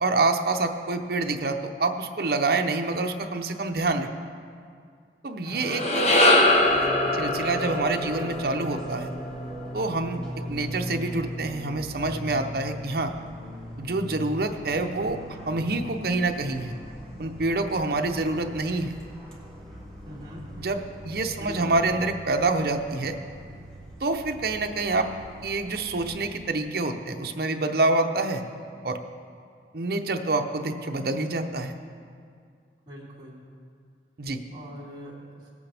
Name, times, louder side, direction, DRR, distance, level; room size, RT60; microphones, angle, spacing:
voice 1, 0.0-4.1 5.2-6.1 7.1-9.1 9.7-10.2 10.5-13.1 13.8-15.2 15.5-16.8 17.2-18.9 20.6-23.2 24.0-25.1 25.4-28.4 28.8-29.0 29.7-31.7 34.2-34.4, right 3 dB, 55° right, 4 dB, 0.7 m, -27 dB
sound 1, 5.5-9.9, left 1 dB, 35° left, 1.0 m, -23 dB
voice 2, 5.5-5.8 20.1-20.5 21.4-22.0 32.9-33.4 34.5-35.5, equal, 25° right, -8 dB, 2.6 m, -42 dB
Fixed-wing aircraft airplane, 6.5-26.2, right 1 dB, 5° left, 1.9 m, -40 dB
18.5 x 8.4 x 3.4 m, 2.2 s
head